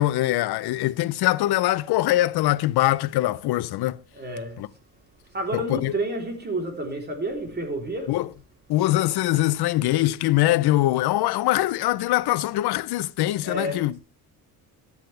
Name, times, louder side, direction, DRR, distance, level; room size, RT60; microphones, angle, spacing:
voice 1, 0.0-4.0 4.6-4.7 5.5-5.9 8.1-8.3 8.7-14.0, left 16 dB, 85° left, 0.7 m, -23 dB
voice 2, 4.1-4.7 5.3-8.2 13.4-13.9, right 1 dB, 25° right, 3.4 m, -30 dB
15.0 x 11.0 x 3.3 m
cardioid pair, 155°, 37 cm